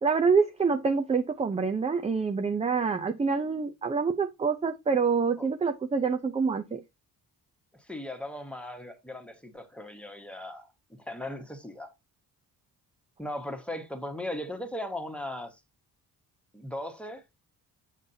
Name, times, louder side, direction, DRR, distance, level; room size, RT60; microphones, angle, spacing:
voice 1, 0.0-6.8, right 5 dB, 15° right, 0.5 m, -26 dB
voice 2, 7.8-10.7 11.0-11.9 13.2-15.6 16.5-17.4, left 1 dB, 5° left, 1.3 m, -38 dB
7.3 x 6.7 x 2.7 m
cardioid pair, 110°, 39 cm